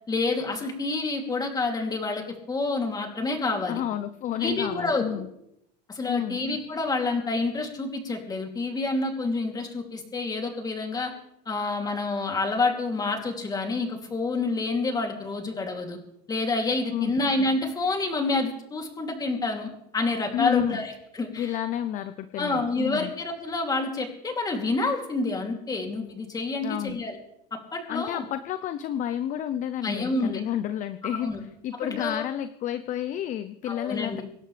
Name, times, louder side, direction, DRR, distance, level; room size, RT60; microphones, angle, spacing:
voice 1, 0.1-2.2 2.5-3.8 4.4-5.0 5.9-11.1 11.5-16.0 16.3-21.5 22.4-27.2 27.7-28.2 29.8-30.4 31.1-31.4 31.8-32.2 33.7-34.2, left 3 dB, 20° left, 2 dB, 2.9 m, -28 dB
voice 2, 3.7-5.3 6.1-6.4 16.9-17.2 20.3-20.9 21.4-23.1 26.6-27.0 27.9-34.2, left 11 dB, 40° left, 12 dB, 0.7 m, -30 dB
25.0 x 11.5 x 3.4 m, 0.78 s
supercardioid pair, 135°, 21 cm